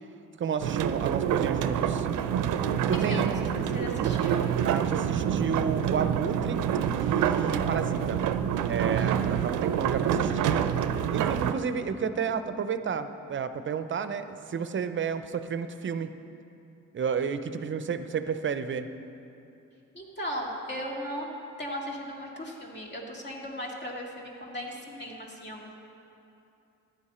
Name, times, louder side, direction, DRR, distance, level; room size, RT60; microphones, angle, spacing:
voice 1, 0.4-2.1 2.9-3.5 4.6-6.6 7.0-8.2 8.7-10.7 11.1-16.1 16.9-18.9, right 6 dB, 40° right, 10 dB, 0.6 m, -31 dB
sound 1, 0.6-11.5, right 8 dB, 85° right, 0.6 m, -27 dB
voice 2, 2.9-4.5 9.0-9.2 9.5-9.7 19.9-21.3 21.6-25.7, equal, 35° left, -1 dB, 2.4 m, -37 dB
14.5 x 10.5 x 4.3 m, 2.8 s
cardioid pair, 90°, 30 cm